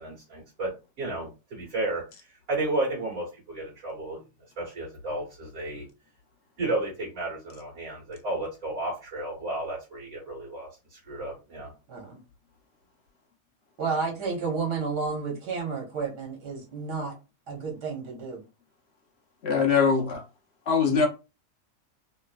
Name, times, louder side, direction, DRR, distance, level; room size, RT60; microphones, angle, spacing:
voice 1, 0.0-4.2 4.6-5.9 6.6-11.7, right 2 dB, 60° right, 1.8 m, -33 dB
voice 2, 11.9-12.2 13.8-17.1 17.5-18.4, right 4 dB, 75° right, 1.7 m, -31 dB
voice 3, 19.4-20.2 20.7-21.1, left 5 dB, 55° left, 0.7 m, -22 dB
3.2 x 3.0 x 2.3 m
omnidirectional pair, 1.8 m